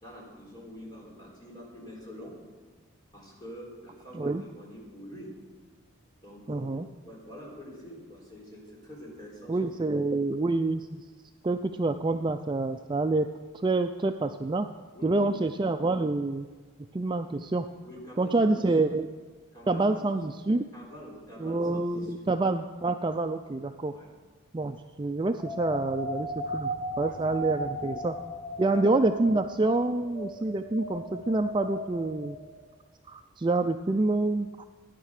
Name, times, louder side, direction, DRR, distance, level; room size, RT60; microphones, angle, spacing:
voice 1, 0.0-2.3 3.1-5.3 6.2-9.6 14.9-15.5 17.8-18.9 19.5-20.2 20.7-22.2 23.9-24.1 27.0-27.4 28.6-28.9, equal, 20° left, -4 dB, 4.3 m, -46 dB
voice 2, 6.5-6.9 9.5-11.0 11.4-13.3 13.5-14.7 15.0-16.5 16.9-17.7 18.2-19.1 19.7-20.7 21.4-23.9 24.5-28.2 28.6-32.4 33.1-34.6, right 2 dB, 20° right, 7 dB, 0.3 m, -27 dB
sound 1, 25.4-32.7, equal, 40° left, 3.8 m, -37 dB
15.0 x 10.0 x 6.6 m, 1.4 s
head